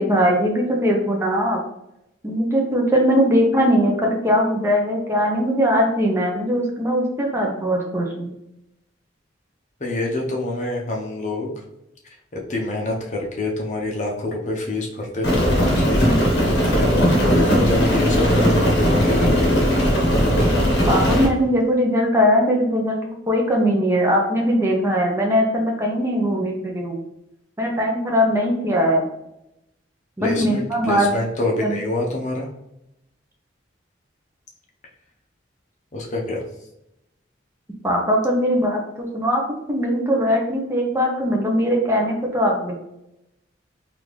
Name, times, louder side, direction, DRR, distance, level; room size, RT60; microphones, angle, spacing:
voice 1, 0.0-1.6 2.2-8.3 20.9-27.0 27.6-29.1 30.2-31.1 31.6-31.8 37.8-39.4 39.7-42.8, equal, 15° right, -1 dB, 0.6 m, -20 dB
voice 2, 9.8-11.5 12.3-16.1 16.4-19.8 30.2-32.5 35.9-36.4, left 2 dB, 40° left, 0 dB, 0.7 m, -26 dB
Rain, 15.2-21.3, equal, 60° left, 1.0 m, -18 dB
3.7 x 2.5 x 3.1 m, 0.84 s
head